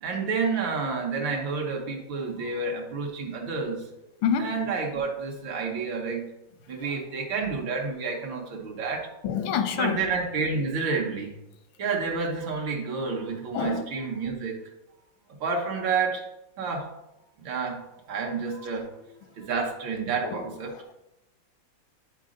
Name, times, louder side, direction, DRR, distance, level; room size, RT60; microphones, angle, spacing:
voice 1, 0.0-3.9 4.4-6.3 6.7-9.1 9.7-11.3 11.8-14.6 15.4-16.3 16.6-16.9 17.4-17.8 18.1-19.1 19.4-20.8, right 4 dB, 80° right, 1.9 m, -29 dB
voice 2, 4.2-4.7 9.2-10.0 13.5-13.8 20.2-20.4, left 7 dB, 90° left, 1.5 m, -27 dB
10.0 x 4.2 x 3.8 m
omnidirectional pair, 2.1 m